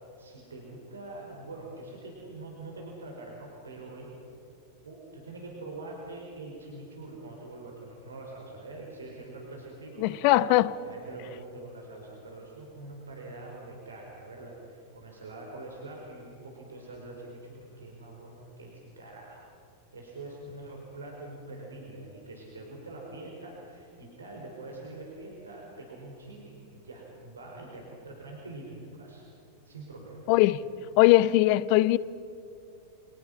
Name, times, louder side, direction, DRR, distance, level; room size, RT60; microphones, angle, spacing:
voice 1, 0.2-4.2 4.8-10.5 10.8-19.5 19.9-29.3 29.6-30.3, right 2 dB, 75° right, 5.1 m, -44 dB
voice 2, 10.0-10.7 30.3-30.6 31.0-32.0, left 17 dB, 45° left, 0.8 m, -20 dB
29.5 x 26.0 x 5.6 m
figure-of-eight pair, 90°, 0 cm